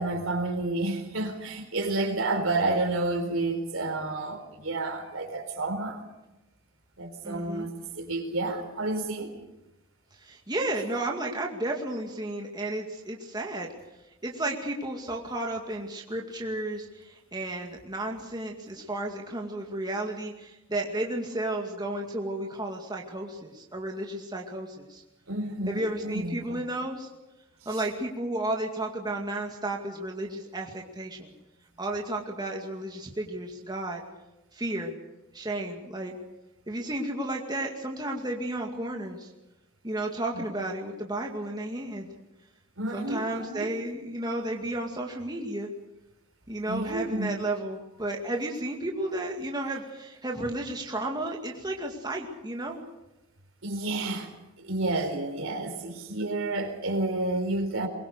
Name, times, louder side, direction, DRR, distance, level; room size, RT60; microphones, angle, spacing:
voice 1, 0.0-6.0 7.0-9.4 25.3-26.6 27.7-27.8 40.3-40.4 42.8-43.8 46.7-47.4 53.6-54.3 54.6-57.9, right 2 dB, 70° right, 4.3 m, -30 dB
voice 2, 7.2-7.7 10.2-13.7 14.2-25.0 25.7-27.1 27.7-31.3 31.8-34.0 34.5-35.0 35.3-36.2 36.7-39.3 39.8-42.1 42.9-45.7 46.5-52.8, right 1 dB, 20° right, 2.2 m, -33 dB
23.5 x 22.0 x 6.6 m
head